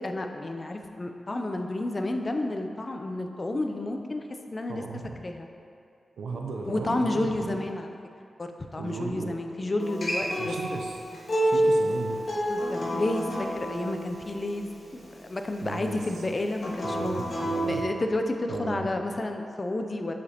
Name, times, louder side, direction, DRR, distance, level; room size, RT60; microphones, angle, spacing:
voice 1, 0.0-4.8 5.2-5.5 6.7-7.9 8.4-10.5 11.3-11.4 12.5-17.2 17.7-20.1, left 2 dB, 40° left, 5 dB, 0.5 m, -31 dB
voice 2, 4.7-5.2 6.2-7.5 8.8-9.4 10.4-11.0 11.4-12.2 15.6-16.0 16.8-17.8 18.5-18.9, right 4 dB, 85° right, 1 dB, 0.5 m, -36 dB
Acoustic guitar, 9.8-15.0 16.6-17.8, right 1 dB, 55° left, 1.4 m, -29 dB
6.6 x 5.0 x 2.9 m, 2.5 s
cardioid pair, 40°, 0 cm